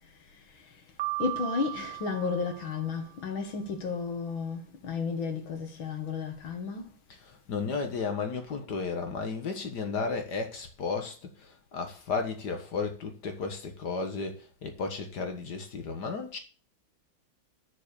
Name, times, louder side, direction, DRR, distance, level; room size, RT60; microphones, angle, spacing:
Piano, 1.0-3.1, right 21 dB, 90° right, 1.7 m, -37 dB
voice 1, 1.2-6.9, left 5 dB, 70° left, 2.4 m, -33 dB
voice 2, 7.1-16.4, left 4 dB, 55° left, 2.0 m, -34 dB
7.2 x 6.9 x 6.8 m
omnidirectional pair, 2.2 m